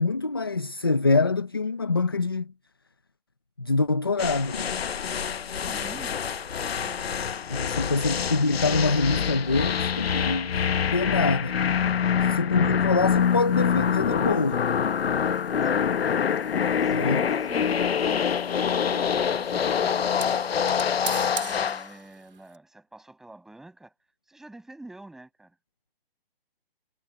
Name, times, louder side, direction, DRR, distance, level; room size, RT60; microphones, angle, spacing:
voice 1, 0.0-2.5 3.6-4.8 7.5-11.6 12.2-14.7 16.9-17.2, left 3 dB, 25° left, 0.5 m, -25 dB
sound 1, 4.2-21.9, left 7 dB, 80° left, 1.0 m, -25 dB
voice 2, 5.5-7.2 15.6-16.0 16.8-18.3 18.8-20.8 21.3-23.9 24.3-25.6, right 2 dB, ahead, 7.1 m, -47 dB
sound 2, 13.2-22.6, right 6 dB, 65° right, 3.8 m, -45 dB
hypercardioid pair, 180°, 30 cm